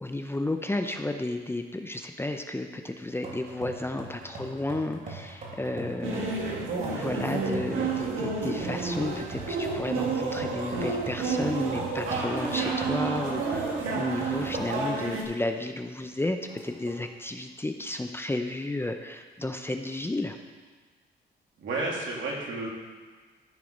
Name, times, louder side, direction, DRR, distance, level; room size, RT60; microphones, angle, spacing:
voice 1, 0.0-6.5 6.9-20.4, left 2 dB, 10° left, 5 dB, 0.6 m, -32 dB
sound 1, 3.2-15.2 15.6-15.7 16.5-17.1, right 2 dB, 40° right, 3.3 m, -41 dB
sound 2, 6.0-15.2, right 4 dB, 90° right, 1.6 m, -30 dB
voice 2, 21.6-22.7, right 2 dB, 70° right, -3 dB, 2.7 m, -32 dB
13.5 x 4.8 x 5.3 m, 1.4 s
cardioid pair, 90°, 20 cm